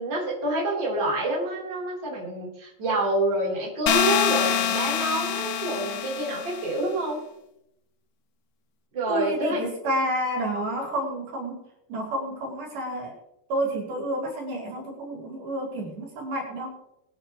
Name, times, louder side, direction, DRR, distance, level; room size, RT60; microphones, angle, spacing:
voice 1, 0.0-7.2 8.9-9.6, right 1 dB, 30° right, -4 dB, 4.5 m, -27 dB
sound 1, 3.9-6.7, left 9 dB, 70° left, 2.2 m, -25 dB
voice 2, 9.1-11.6 11.9-13.2 13.5-16.8, right 1 dB, 75° right, -2 dB, 5.9 m, -29 dB
22.5 x 10.5 x 3.2 m, 0.82 s
omnidirectional pair, 4.3 m